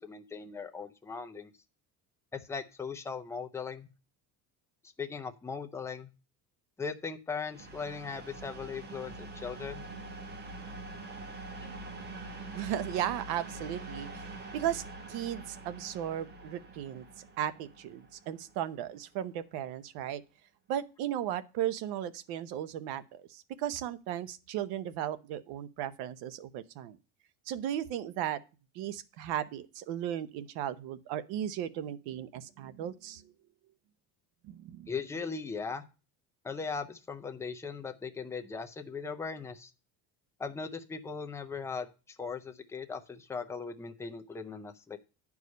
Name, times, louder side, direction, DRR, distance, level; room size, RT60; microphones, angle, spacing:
voice 1, 0.0-1.5 2.3-3.9 5.0-6.1 6.8-9.8 11.6-11.7 34.9-35.8 36.4-39.7 40.4-45.0, left 5 dB, 5° left, 0.5 m, -39 dB
sound 1, 7.5-19.1, right 2 dB, 25° right, 1.2 m, -45 dB
voice 2, 12.5-14.3 14.5-14.8 15.1-17.0 17.4-20.2 20.7-27.0 27.5-28.4 28.7-33.2 34.4-34.9, right 11 dB, 70° right, 0.9 m, -36 dB
9.7 x 4.8 x 5.2 m
cardioid pair, 165°, 39 cm